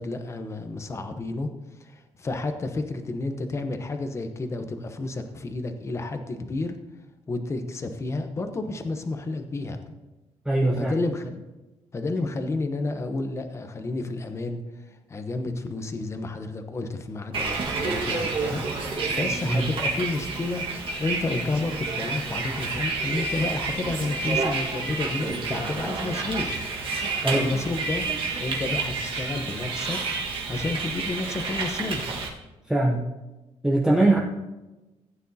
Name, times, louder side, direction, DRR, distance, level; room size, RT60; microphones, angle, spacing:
voice 1, 0.0-1.5 1.8-6.8 7.3-9.8 10.7-11.4 11.9-14.6 15.1-20.6 21.0-26.7 27.3-28.1 28.4-30.0 30.5-32.2 34.0-34.2, left 2 dB, 25° left, 7 dB, 0.9 m, -31 dB
voice 2, 10.5-10.9 19.4-19.7 27.2-27.5 32.7-33.0 33.6-34.2, right 2 dB, 5° right, -2 dB, 0.8 m, -21 dB
Bus, 17.3-32.3, right 4 dB, 50° right, 1.6 m, -29 dB
15.5 x 9.1 x 2.8 m, 1.1 s
cardioid pair, 145°, 12 cm